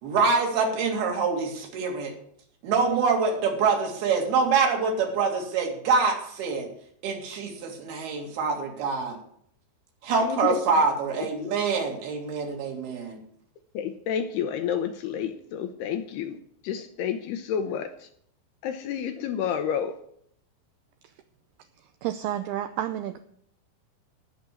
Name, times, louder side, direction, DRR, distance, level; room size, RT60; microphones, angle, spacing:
voice 1, 0.0-2.1 2.6-6.7 7.0-9.2 10.0-13.2, right 4 dB, 65° right, 2 dB, 3.9 m, -25 dB
voice 2, 10.2-10.6 11.2-11.5 13.7-16.4 16.6-18.1 18.6-20.0, left 8 dB, 75° left, 8 dB, 2.5 m, -30 dB
voice 3, 22.0-23.2, right 12 dB, 80° right, 9 dB, 2.3 m, -30 dB
16.5 x 6.0 x 8.2 m, 0.68 s
omnidirectional pair, 5.2 m